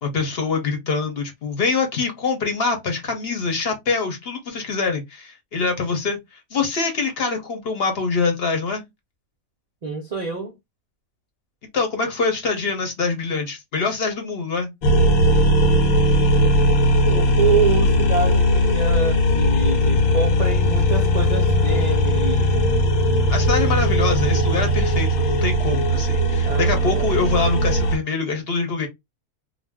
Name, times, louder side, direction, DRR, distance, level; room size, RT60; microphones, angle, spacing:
voice 1, 0.0-8.8 11.7-14.7 23.3-28.9, left 4 dB, 50° left, 0.8 m, -24 dB
voice 2, 9.8-10.6 17.0-22.7 26.5-27.6, right 5 dB, 70° right, 0.4 m, -26 dB
sound 1, 14.8-28.0, equal, 80° left, 1.1 m, -18 dB
2.4 x 2.1 x 3.4 m
omnidirectional pair, 1.5 m